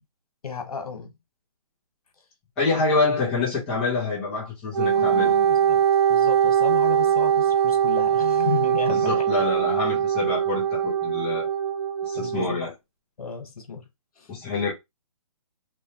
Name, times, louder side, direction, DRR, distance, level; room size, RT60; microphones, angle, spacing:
voice 1, 0.4-1.1 4.9-9.4 12.1-12.6 13.2-13.9 14.2-14.3, left 6 dB, 90° left, 1.2 m, -34 dB
voice 2, 2.6-5.3 8.9-11.5 12.0-12.7 14.3-14.7, left 3 dB, 5° left, 0.5 m, -26 dB
Wind instrument woodwind instrument, 4.7-12.5, right 9 dB, 45° right, 0.5 m, -22 dB
3.1 x 2.2 x 2.8 m
hypercardioid pair, 175°, 19 cm